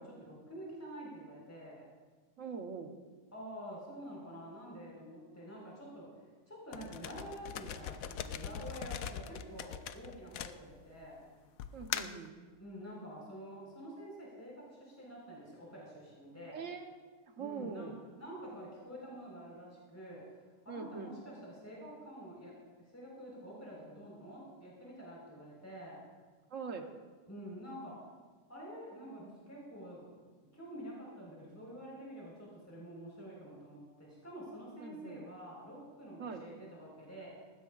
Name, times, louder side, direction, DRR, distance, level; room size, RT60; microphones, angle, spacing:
voice 1, 0.0-1.9 3.3-11.3 12.6-16.7 17.4-17.9 18.2-20.2 20.6-26.0 27.3-27.9 28.5-30.1 30.5-37.3, equal, 10° left, -5 dB, 4.3 m, -48 dB
voice 2, 2.4-3.0 11.7-12.4 16.4-17.0 17.3-17.9 20.7-21.1 26.5-26.9 34.8-35.2 36.2-36.4, right 5 dB, 60° right, 5 dB, 1.4 m, -42 dB
sound 1, 6.7-11.0 11.6-12.3, left 9 dB, 70° left, 1.0 m, -41 dB
19.5 x 16.0 x 2.4 m, 1.4 s
omnidirectional pair, 1.6 m